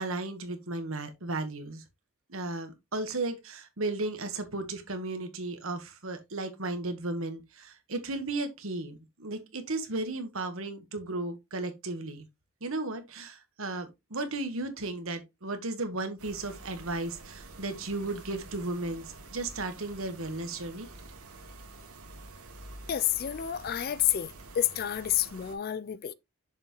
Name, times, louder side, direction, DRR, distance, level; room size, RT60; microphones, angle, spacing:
voice 1, 0.0-1.8 2.3-12.3 12.6-20.9, right 2 dB, 65° right, 1.4 m, -35 dB
sound 1, 16.2-25.5, right 2 dB, 80° right, 1.6 m, -48 dB
voice 2, 22.9-24.3 24.6-26.1, left 11 dB, 40° left, 0.4 m, -29 dB
6.7 x 5.7 x 3.1 m
head